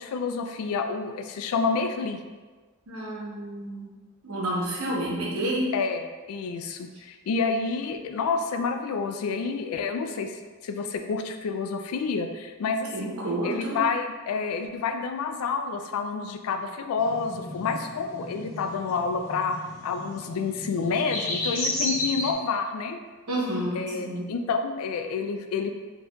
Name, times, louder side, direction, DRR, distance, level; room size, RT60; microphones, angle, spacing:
voice 1, 0.0-2.2 5.7-13.2 13.4-19.6 19.8-23.0 23.7-25.7, left 5 dB, 75° left, 7 dB, 0.3 m, -29 dB
voice 2, 2.9-3.9 4.2-5.6 12.9-13.8 23.3-24.3, right 1 dB, 80° right, -4 dB, 1.0 m, -30 dB
sound 1, 17.0-22.3, left 2 dB, 60° left, 0.7 m, -33 dB
4.3 x 2.6 x 2.3 m, 1.4 s
head